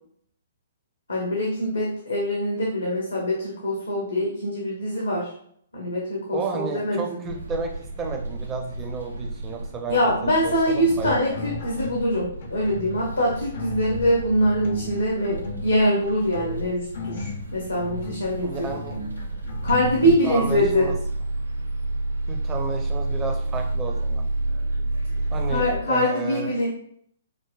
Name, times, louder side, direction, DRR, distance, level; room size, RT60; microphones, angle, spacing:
voice 1, 1.1-5.3 5.7-7.2 9.9-18.7 19.6-20.9 25.5-26.7, equal, 80° left, -4 dB, 0.9 m, -24 dB
voice 2, 6.3-7.7 8.0-11.4 18.4-19.0 20.0-21.0 22.3-24.3 25.3-26.5, right 4 dB, 20° right, 3 dB, 0.6 m, -32 dB
sound 1, 7.2-25.8, right 2 dB, 85° right, 0.6 m, -31 dB
sound 2, 10.9-12.2 12.4-20.5, left 2 dB, 55° left, 0.6 m, -36 dB
5.0 x 2.1 x 2.3 m, 0.65 s
figure-of-eight pair, 120°, 0 cm